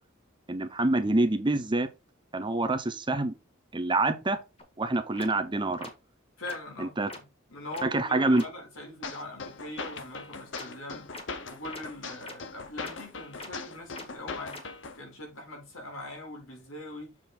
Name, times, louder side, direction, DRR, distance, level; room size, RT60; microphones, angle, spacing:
voice 1, 0.5-1.9 2.3-3.3 3.7-4.4 4.8-5.9 6.8-7.1 7.8-8.4, right 2 dB, 25° right, 0.9 m, -26 dB
sound 1, 4.6-4.7 5.2-5.3 5.8-5.9 6.4-6.6 7.1-7.2 7.7-7.8 8.3-8.4 10.5-10.6 11.1-11.2 11.7-11.8 12.2-12.3 12.8-12.9 13.4-13.5 13.9-14.0 14.5-14.6, left 2 dB, 30° left, 1.9 m, -41 dB
voice 2, 6.4-7.2 7.5-11.1 11.5-14.6 15.0-17.1, left 2 dB, 90° left, 4.0 m, -42 dB
sound 2, 9.0-15.0, left 4 dB, 65° left, 1.1 m, -40 dB
7.4 x 4.2 x 4.4 m
head